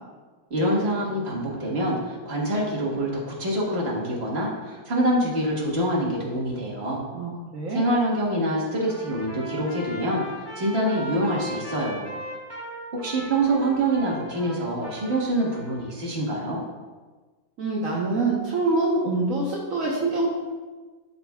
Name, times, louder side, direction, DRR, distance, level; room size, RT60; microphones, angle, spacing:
voice 1, 0.5-7.0 7.7-12.1 12.9-16.6, right 1 dB, 45° right, -4 dB, 1.7 m, -25 dB
voice 2, 7.1-7.8 17.6-20.3, right 3 dB, 65° right, -5 dB, 1.3 m, -25 dB
Trumpet, 8.8-15.9, right 1 dB, 15° left, 2.0 m, -39 dB
12.0 x 4.3 x 2.3 m, 1.3 s
omnidirectional pair, 1.5 m